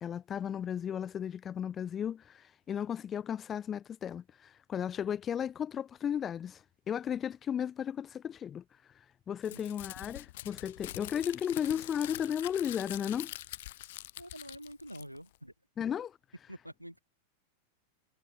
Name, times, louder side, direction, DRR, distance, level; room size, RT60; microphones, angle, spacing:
voice 1, 0.0-8.6 9.3-13.3 15.8-16.2, left 9 dB, 25° left, 0.4 m, -35 dB
Crumpling crinkling, 9.4-15.4, left 16 dB, 55° left, 0.7 m, -45 dB
voice 2, 14.2-15.5 16.5-17.0, equal, 90° right, 1.4 m, -47 dB
figure-of-eight pair, 90°, 0 cm